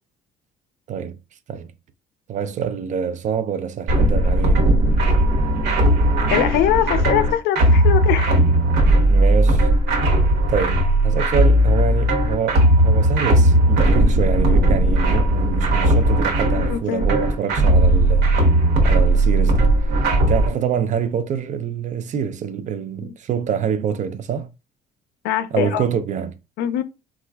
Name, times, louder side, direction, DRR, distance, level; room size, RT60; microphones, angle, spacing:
voice 1, 2.3-4.7 9.1-9.7 10.5-18.3 18.8-19.8 20.2-24.5 25.5-26.3, right 7 dB, 45° right, 0.4 m, -25 dB
sound 1, 3.9-20.5, right 1 dB, 90° right, 0.9 m, -17 dB
voice 2, 6.3-8.4 16.6-17.1 23.0-23.1 25.2-25.8 26.6-26.8, left 11 dB, 85° left, 0.5 m, -22 dB
4.1 x 2.4 x 2.3 m
cardioid pair, 110°, 17 cm